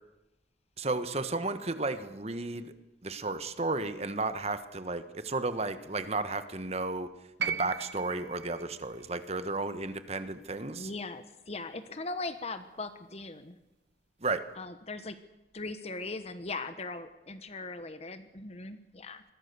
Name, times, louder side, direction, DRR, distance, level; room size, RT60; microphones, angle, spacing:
voice 1, 0.8-2.7 3.0-7.1 7.5-10.9 14.2-14.4, right 3 dB, 35° right, 11 dB, 1.4 m, -33 dB
sound 1, 7.4-11.6 12.8-12.9, right 7 dB, 80° right, 1.3 m, -39 dB
voice 2, 10.7-13.6 14.5-15.2 15.5-19.2, left 3 dB, 35° left, 10 dB, 1.3 m, -39 dB
26.0 x 22.0 x 7.0 m, 0.98 s
head